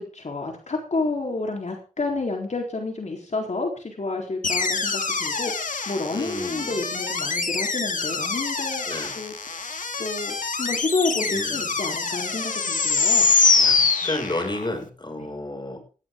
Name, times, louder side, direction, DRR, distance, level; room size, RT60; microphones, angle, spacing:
voice 1, 0.0-9.6 10.0-13.3 13.8-14.1 15.2-15.3, left 3 dB, 60° left, 1 dB, 4.2 m, -30 dB
sound 1, 4.4-14.7, left 4 dB, 80° left, 2.4 m, -24 dB
voice 2, 6.1-6.8 8.9-9.1 11.2-11.7 13.5-13.8 14.0-15.8, left 1 dB, 35° left, 4 dB, 6.6 m, -31 dB
19.5 x 17.0 x 3.9 m, 0.39 s
wide cardioid pair, 70°, 13 cm